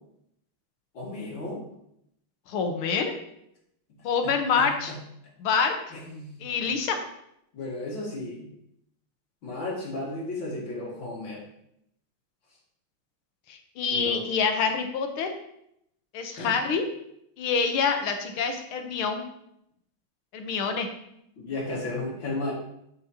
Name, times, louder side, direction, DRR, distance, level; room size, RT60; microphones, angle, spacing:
voice 1, 0.9-1.6 4.2-5.0 5.9-6.4 7.5-8.5 9.4-11.4 13.9-14.2 16.3-16.5 21.4-22.5, left 2 dB, 65° left, -4 dB, 2.9 m, -34 dB
voice 2, 2.5-3.2 4.0-4.9 5.4-5.8 6.4-7.0 13.5-15.3 16.1-16.8 17.4-19.2 20.3-20.9, left 5 dB, 85° left, 5 dB, 1.9 m, -26 dB
13.0 x 5.2 x 2.9 m, 0.76 s
omnidirectional pair, 2.3 m